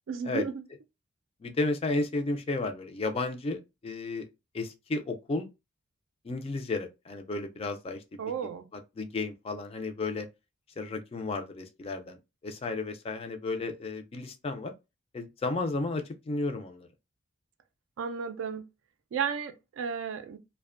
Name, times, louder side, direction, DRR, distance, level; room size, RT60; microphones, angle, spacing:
voice 1, 0.1-0.6 8.2-8.7 18.0-18.6 19.1-20.4, right 6 dB, 70° right, 0.3 m, -33 dB
voice 2, 1.4-4.3 4.5-5.5 6.2-8.2 8.7-10.3 10.8-12.2 12.4-14.7 15.1-16.9, left 3 dB, 30° left, 0.3 m, -33 dB
2.5 x 2.1 x 2.4 m
head